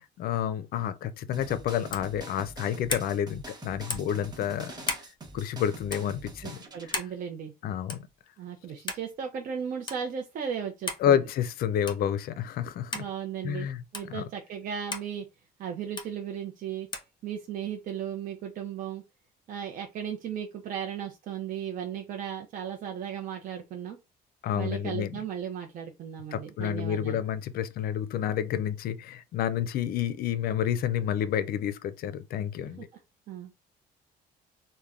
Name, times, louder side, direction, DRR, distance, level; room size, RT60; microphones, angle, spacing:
voice 1, 0.0-4.9 5.3-6.6 7.6-8.1 11.0-13.0 13.4-14.3 24.4-25.1 26.3-32.9, left 9 dB, 60° left, 0.4 m, -29 dB
sound 1, 1.3-7.0, right 3 dB, 25° right, 0.8 m, -45 dB
sound 2, 1.9-2.1 2.9-3.1 3.9-4.2 4.8-5.1 5.9-6.1 6.9-7.2 7.9-8.1 8.9-9.1 9.9-10.0 10.9-11.1 11.9-12.1 12.9-13.1 13.9-14.1 14.9-15.1 16.0-16.1 16.9-17.1, left 3 dB, 25° left, 0.8 m, -34 dB
voice 2, 6.4-7.5 8.4-11.2 12.9-15.3 15.6-16.9 17.2-19.0 19.5-24.0 24.6-27.2 32.8-32.9 33.3-33.6, right 8 dB, 55° right, 0.5 m, -36 dB
3.3 x 2.1 x 2.4 m
cardioid pair, 110°, 17 cm